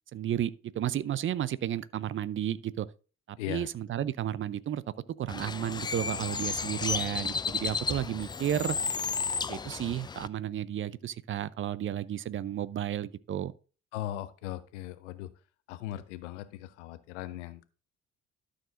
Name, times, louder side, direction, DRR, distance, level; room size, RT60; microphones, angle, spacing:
voice 1, 0.1-2.9 3.3-4.8 5.2-8.8 9.5-13.5, right 11 dB, 35° right, 0.5 m, -32 dB
voice 2, 3.4-3.7 13.9-15.3 15.7-17.6, left 13 dB, 75° left, 0.8 m, -38 dB
Bird, 5.3-10.3, left 5 dB, 15° left, 0.3 m, -33 dB
12.5 x 6.4 x 2.5 m
figure-of-eight pair, 50°, 36 cm